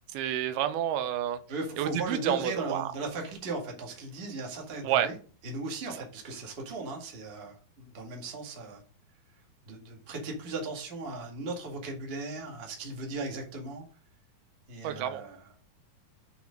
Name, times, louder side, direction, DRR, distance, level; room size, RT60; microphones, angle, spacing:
voice 1, 0.1-1.4 1.8-2.9 4.8-5.1 14.8-15.2, right 11 dB, 90° right, 11 dB, 2.6 m, -29 dB
voice 2, 1.5-5.2 5.4-8.8 9.6-13.8 14.7-15.5, right 2 dB, 30° right, 0 dB, 1.1 m, -37 dB
7.0 x 4.8 x 5.2 m, 0.40 s
omnidirectional pair, 4.4 m